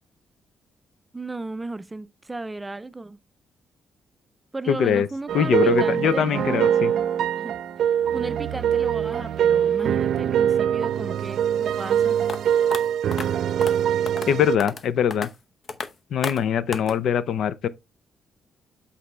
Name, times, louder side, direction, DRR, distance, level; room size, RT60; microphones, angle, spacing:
voice 1, 1.1-3.2 4.5-6.3 7.3-7.5 7.8-12.2, right 2 dB, 15° right, 0.4 m, -35 dB
voice 2, 4.7-5.1 5.3-6.9 14.3-15.3 16.1-17.7, left 8 dB, 75° left, 0.5 m, -22 dB
sound 1, 5.3-14.6, right 9 dB, 75° right, 0.5 m, -23 dB
sound 2, 12.3-12.4 12.7-12.8 13.1-13.3 13.6-13.8 14.1-14.3 14.6-14.8 15.1-15.3 15.7-15.9 16.2-16.4 16.7-16.9, left 4 dB, 45° left, 0.7 m, -31 dB
8.1 x 4.1 x 3.2 m
cardioid pair, 120°, 0 cm